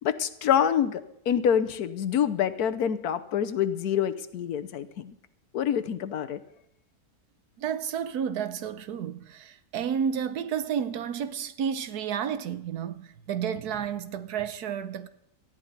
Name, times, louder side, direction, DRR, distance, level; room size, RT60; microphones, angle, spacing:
voice 1, 0.0-5.1 5.5-6.4, left 9 dB, 80° left, 1.3 m, -26 dB
voice 2, 7.6-15.1, right 8 dB, 80° right, 1.3 m, -31 dB
18.5 x 14.0 x 4.0 m
omnidirectional pair, 1.6 m